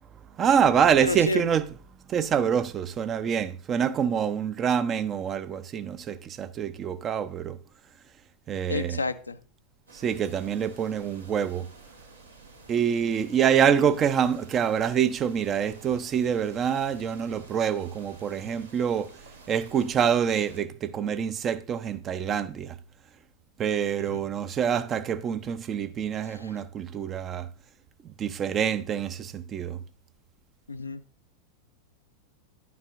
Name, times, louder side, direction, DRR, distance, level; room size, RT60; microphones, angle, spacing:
voice 1, 0.4-1.7 2.1-7.6 8.5-9.0 9.9-11.7 12.7-19.1 19.5-22.8 23.6-27.5 28.2-29.8, right 8 dB, 25° right, 0.6 m, -26 dB
voice 2, 1.0-1.4 8.7-9.4 24.0-24.2 26.3-26.5 30.7-31.0, left 2 dB, 80° left, 0.6 m, -31 dB
sound 1, 9.9-20.6, right 3 dB, 75° right, 1.6 m, -51 dB
10.5 x 9.4 x 2.5 m
figure-of-eight pair, 90°, 0 cm